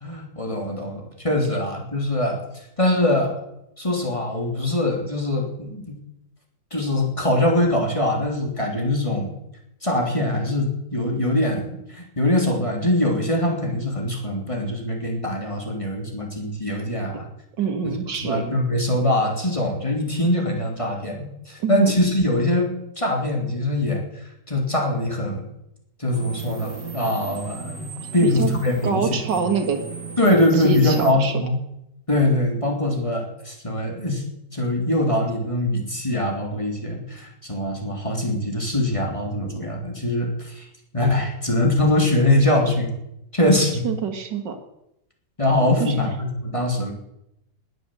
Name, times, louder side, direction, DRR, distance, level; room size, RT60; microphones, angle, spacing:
voice 1, 0.0-2.4 2.8-3.3 3.8-6.0 6.7-9.3 9.8-17.2 18.2-24.0 24.5-25.5 26.0-27.9 28.1-29.1 30.2-31.6 32.1-34.2 34.5-40.6 40.9-42.9 43.3-43.8 45.4-46.9, left 1 dB, 15° left, 0 dB, 3.2 m, -22 dB
voice 2, 17.6-18.5 21.6-21.9 28.0-28.5 28.8-29.8 30.6-31.3 43.8-44.6 45.8-46.1, right 5 dB, 85° right, 6 dB, 2.4 m, -25 dB
sound 1, 26.1-31.1, right 6 dB, 65° right, 2.8 m, -35 dB
20.5 x 7.9 x 7.8 m, 0.84 s
omnidirectional pair, 1.9 m